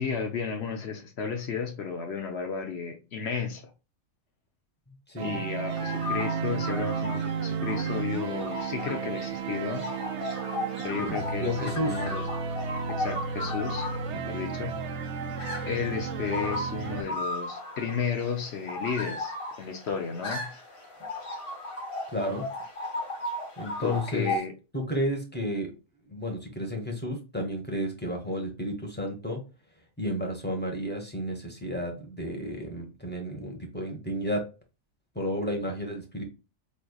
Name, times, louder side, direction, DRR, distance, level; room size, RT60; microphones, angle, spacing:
voice 1, 0.0-3.7 5.2-9.9 10.8-12.2 12.9-14.8 15.6-20.5 23.8-24.5, left 6 dB, 60° left, 0.9 m, -33 dB
voice 2, 5.1-5.4 11.0-11.1 11.4-12.0 22.1-22.5 23.6-24.3 24.7-25.7 26.1-29.4 30.0-34.5 35.1-36.2, equal, 10° left, 0.9 m, -32 dB
sound 1, 5.2-17.0, right 6 dB, 65° right, 0.8 m, -33 dB
sound 2, 5.7-24.4, left 2 dB, 80° left, 2.4 m, -36 dB
5.2 x 3.2 x 2.3 m
omnidirectional pair, 1.4 m